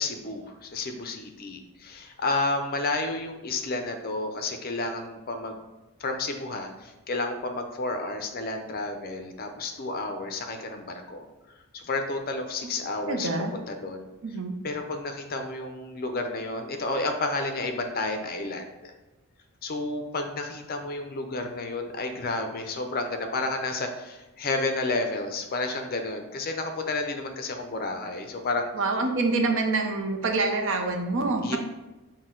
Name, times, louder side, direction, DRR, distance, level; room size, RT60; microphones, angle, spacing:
voice 1, 0.0-5.6 6.0-11.2 11.7-14.1 14.6-18.9 19.6-28.7 31.4-31.6, left 2 dB, 40° left, 5 dB, 0.5 m, -31 dB
voice 2, 13.1-13.5 14.2-14.5 28.7-31.6, right 3 dB, 55° right, 3 dB, 0.6 m, -26 dB
6.2 x 2.2 x 3.7 m, 1.1 s
head